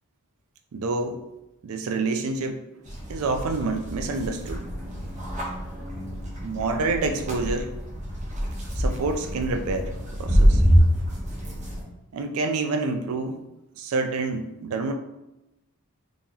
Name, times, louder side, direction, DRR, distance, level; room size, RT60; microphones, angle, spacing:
voice 1, 0.7-1.2 1.6-2.6 3.1-4.7 6.4-7.8 8.8-9.9 10.2-10.6 12.1-13.4 13.8-15.0, right 3 dB, 70° right, 5 dB, 0.4 m, -27 dB
sound 1, 2.8-11.8, equal, 35° right, 0.8 m, -25 dB
3.7 x 2.9 x 2.8 m, 0.95 s
head